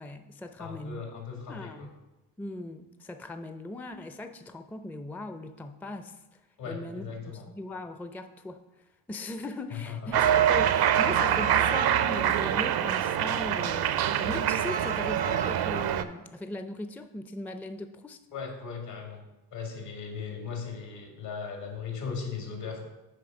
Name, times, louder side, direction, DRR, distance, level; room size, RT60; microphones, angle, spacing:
voice 1, 0.0-1.0 1.5-1.9 2.4-6.1 6.6-7.1 7.5-8.6 9.1-18.2, left 2 dB, 5° left, 8 dB, 0.5 m, -39 dB
voice 2, 0.6-1.9 6.6-7.5 9.7-10.2 18.3-19.2 19.5-22.8, left 6 dB, 70° left, 1 dB, 2.3 m, -38 dB
Cheering, 10.1-16.0, right 10 dB, 55° right, 0.6 m, -25 dB
6.5 x 4.7 x 5.8 m, 1.0 s
hypercardioid pair, 50°, 45 cm